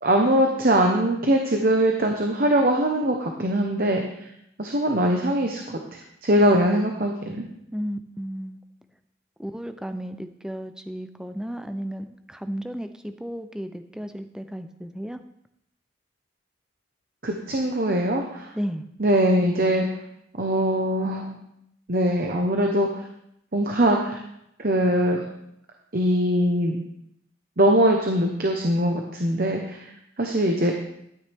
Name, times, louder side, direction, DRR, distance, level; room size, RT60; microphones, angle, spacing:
voice 1, 0.0-4.3 4.6-5.8 6.2-7.4 17.2-18.5 19.0-19.9 20.3-21.4 21.9-22.9 23.5-24.2 24.6-25.2 25.9-26.8 27.6-29.9 30.2-30.7, right 1 dB, 45° right, 2 dB, 1.0 m, -22 dB
voice 2, 7.7-8.6 9.4-15.2 18.5-18.9, equal, 5° right, 9 dB, 0.4 m, -33 dB
12.0 x 9.5 x 3.5 m, 0.78 s
head